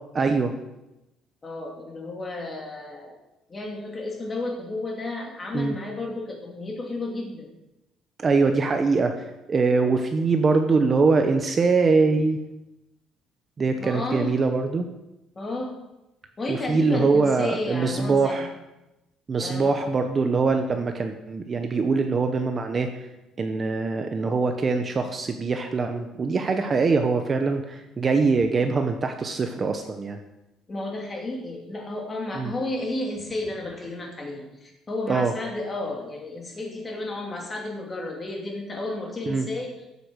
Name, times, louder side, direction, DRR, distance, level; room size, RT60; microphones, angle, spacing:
voice 1, 0.1-0.5 5.5-5.7 8.2-9.1 9.5-12.4 13.6-14.8 16.5-18.5 19.3-22.9 23.4-30.2 32.3-32.5 35.1-35.3 39.3-39.5, right 4 dB, 25° right, 6 dB, 0.8 m, -23 dB
voice 2, 1.4-3.2 3.5-7.5 13.8-14.4 15.4-15.8 16.4-18.5 19.4-19.7 30.7-39.7, left 2 dB, 20° left, 0 dB, 2.6 m, -32 dB
14.5 x 8.3 x 6.2 m, 0.96 s
cardioid pair, 175°, 0 cm